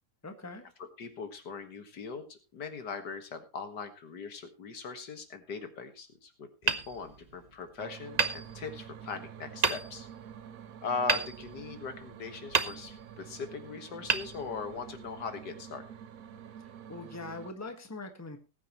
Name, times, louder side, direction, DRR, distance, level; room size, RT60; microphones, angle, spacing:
voice 1, 0.2-0.6 16.9-18.4, left 2 dB, 10° left, 7 dB, 1.4 m, -42 dB
voice 2, 1.0-10.1 10.8-15.8, left 5 dB, 75° left, 8 dB, 2.2 m, -40 dB
Hammer, 6.6-7.6 8.2-9.1 9.6-10.2 11.1-12.0 12.5-13.3 14.0-15.0, right 4 dB, 35° right, 0.8 m, -32 dB
sound 1, 7.8-17.5, right 9 dB, 60° right, 1.2 m, -48 dB
19.0 x 9.4 x 3.0 m, 0.28 s
omnidirectional pair, 1.8 m